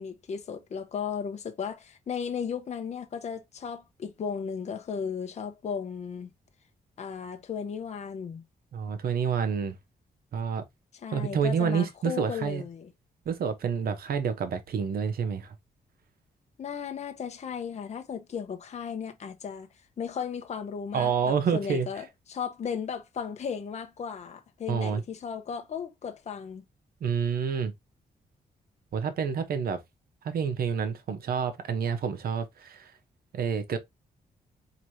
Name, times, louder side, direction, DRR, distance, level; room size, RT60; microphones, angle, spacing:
voice 1, 0.0-6.3 7.0-8.4 10.9-12.9 16.6-19.7 20.0-26.6, left 7 dB, 45° left, 0.7 m, -35 dB
voice 2, 8.7-9.8 10.3-10.6 11.1-12.6 13.3-15.5 20.9-21.9 24.7-25.0 27.0-27.7 28.9-29.8 30.2-32.9 33.3-33.8, right 6 dB, 70° right, 0.9 m, -28 dB
4.7 x 2.9 x 2.7 m
cardioid pair, 125°, 16 cm